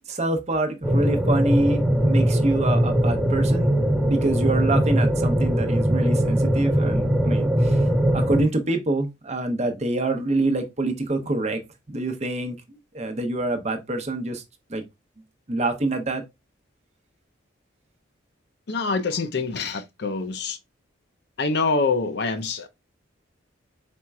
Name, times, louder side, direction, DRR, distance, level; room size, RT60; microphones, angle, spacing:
voice 1, 0.1-3.8 4.1-7.9 8.1-11.6 11.9-14.4 14.7-14.8 15.5-16.2, right 2 dB, 35° right, 0.8 m, -26 dB
sound 1, 0.8-8.4, equal, 5° right, 0.5 m, -21 dB
voice 2, 18.7-20.6 21.4-22.7, left 4 dB, 55° left, 0.6 m, -25 dB
4.3 x 4.3 x 2.3 m
head